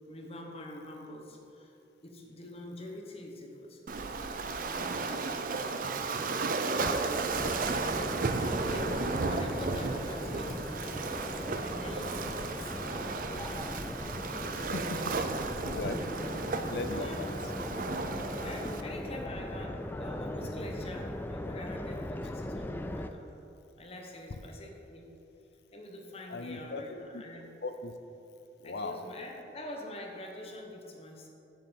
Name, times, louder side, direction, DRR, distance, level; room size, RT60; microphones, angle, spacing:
voice 1, 0.1-1.8 2.0-3.8 4.2-7.4 8.3-11.1 11.5-12.8 15.0-15.2 15.9-16.3 16.9-17.3 18.4-23.3 23.8-25.1 25.7-27.5 28.6-31.3, left 1 dB, 35° left, 1 dB, 1.2 m, -45 dB
Waves surf, 3.9-18.8, right 4 dB, 50° right, 0.5 m, -34 dB
sound 1, 7.3-23.1, left 1 dB, 10° left, 0.3 m, -39 dB
voice 2, 14.5-15.2 15.6-16.0 16.5-17.3 26.3-27.2 27.6-27.9 28.6-29.0, left 3 dB, 65° left, 8 dB, 0.5 m, -38 dB
7.7 x 7.6 x 5.3 m, 2.8 s
head